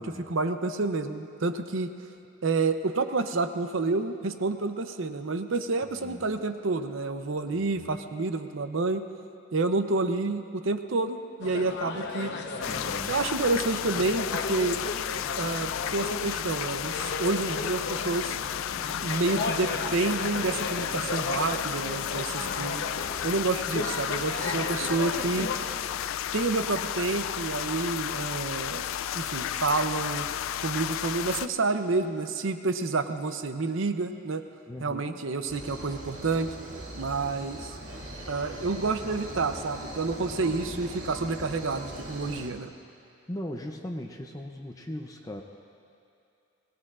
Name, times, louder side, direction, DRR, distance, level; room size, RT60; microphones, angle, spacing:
voice 1, 0.0-1.9 2.4-9.1 9.5-12.3 13.1-14.8 15.4-18.3 19.0-22.9 23.2-25.5 26.3-28.8 29.1-30.3 30.6-34.4 34.8-36.5 36.9-37.8 38.3-42.7, right 3 dB, 70° right, 9 dB, 0.7 m, -29 dB
voice 2, 5.8-6.2 7.5-7.8 12.7-13.2 34.7-35.1 40.5-40.8 43.3-45.4, left 1 dB, 15° left, 2 dB, 0.6 m, -39 dB
sound 1, 11.4-25.6, left 3 dB, 55° left, 0.9 m, -35 dB
sound 2, 12.6-31.5, left 10 dB, 75° left, 0.3 m, -33 dB
sound 3, 35.5-42.5, right 1 dB, 90° right, 2.0 m, -40 dB
22.0 x 18.0 x 2.5 m, 2.6 s
head